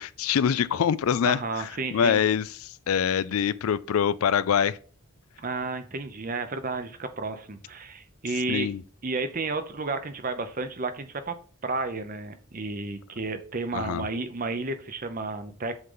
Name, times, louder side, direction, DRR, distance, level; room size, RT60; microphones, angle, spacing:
voice 1, 0.0-1.4 1.9-4.8 8.5-8.8 13.7-14.1, left 7 dB, 75° left, 0.4 m, -24 dB
voice 2, 1.2-2.2 5.4-8.7 9.0-11.3 11.6-15.8, right 3 dB, 40° right, 0.7 m, -32 dB
8.0 x 3.8 x 3.8 m
head